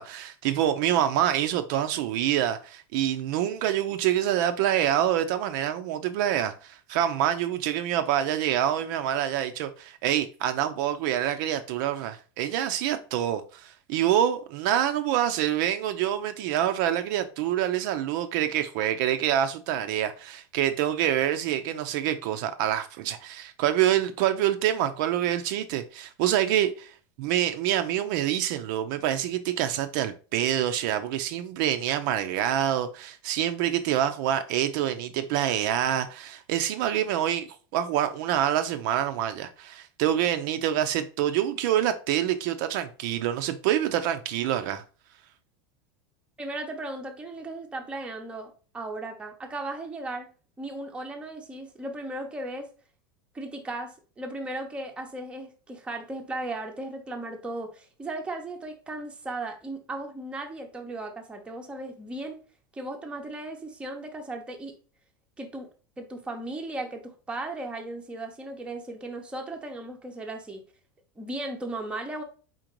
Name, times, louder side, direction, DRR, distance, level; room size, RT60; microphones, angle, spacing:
voice 1, 0.0-26.9 27.2-37.5 37.7-44.8, right 11 dB, 60° right, 0.5 m, -26 dB
voice 2, 46.4-50.3 50.6-52.7 53.3-62.4 62.7-64.7 65.4-65.7 66.0-70.6 71.2-72.2, right 2 dB, 10° right, 0.7 m, -36 dB
4.3 x 3.8 x 3.0 m
supercardioid pair, 150°, 12 cm